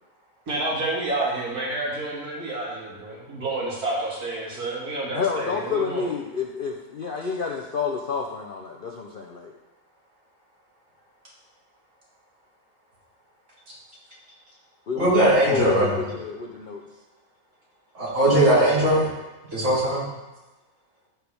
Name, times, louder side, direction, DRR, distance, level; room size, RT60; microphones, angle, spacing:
voice 1, 0.5-6.0, right 2 dB, 90° right, -5 dB, 2.7 m, -29 dB
voice 2, 5.1-9.5 14.9-16.8, left 5 dB, 55° left, 0 dB, 0.6 m, -29 dB
voice 3, 14.9-16.0 17.9-19.1 19.5-20.1, right 1 dB, 55° right, -8 dB, 3.3 m, -19 dB
14.0 x 4.7 x 3.5 m, 1.1 s
omnidirectional pair, 1.6 m